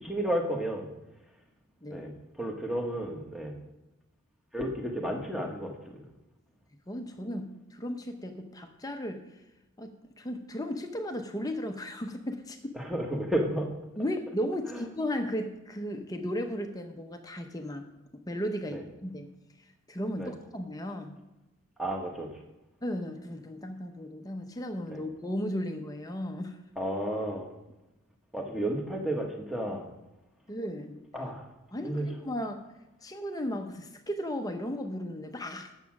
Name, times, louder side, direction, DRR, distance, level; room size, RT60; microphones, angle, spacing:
voice 1, 0.0-0.9 1.9-3.5 4.5-6.0 12.7-13.7 14.7-14.8 18.7-18.8 20.2-20.3 21.8-22.3 24.9-25.0 26.8-27.5 28.3-29.9 31.1-31.5 31.8-32.1, right 1 dB, ahead, 1 dB, 1.1 m, -32 dB
voice 2, 6.9-9.3 9.8-12.8 14.0-17.8 18.1-19.3 19.9-21.2 22.8-26.6 30.5-31.0 31.7-32.6 33.0-35.7, equal, 15° left, 5 dB, 0.6 m, -35 dB
9.2 x 7.3 x 5.9 m, 0.98 s
head